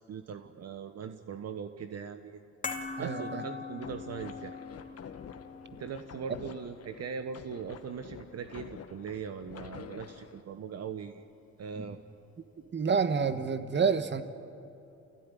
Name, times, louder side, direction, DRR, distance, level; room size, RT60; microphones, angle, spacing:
voice 1, 0.1-2.4 3.0-4.6 5.8-11.2 11.6-12.0, right 6 dB, 55° right, 8 dB, 1.1 m, -40 dB
sound 1, 2.6-9.1 9.3-9.5, left 4 dB, 25° left, 2.5 m, -43 dB
voice 2, 3.0-3.4 11.8-11.9 12.7-14.2, right 5 dB, 35° right, 10 dB, 1.5 m, -28 dB
sound 2, 3.8-10.4, left 7 dB, 55° left, 1.4 m, -48 dB
28.0 x 16.5 x 9.9 m, 2.7 s
cardioid pair, 90°, 30 cm